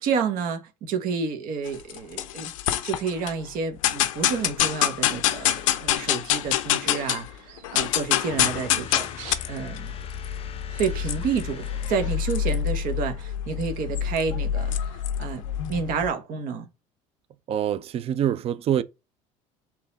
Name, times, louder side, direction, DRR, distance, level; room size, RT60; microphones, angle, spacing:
voice 1, 0.0-2.5 2.8-9.9 10.8-15.4 15.7-16.7, right 5 dB, 60° right, 0.9 m, -30 dB
sound 1, 1.7-3.3 3.8-7.3 7.6-16.1, left 11 dB, 90° left, 0.5 m, -26 dB
sound 2, 5.3-12.2, right 8 dB, 85° right, 0.9 m, -50 dB
sound 3, 8.3-13.0, left 7 dB, 35° left, 0.5 m, -42 dB
voice 2, 17.5-18.8, right 10 dB, 40° right, 0.4 m, -25 dB
4.0 x 2.9 x 3.7 m
supercardioid pair, 80°, 16 cm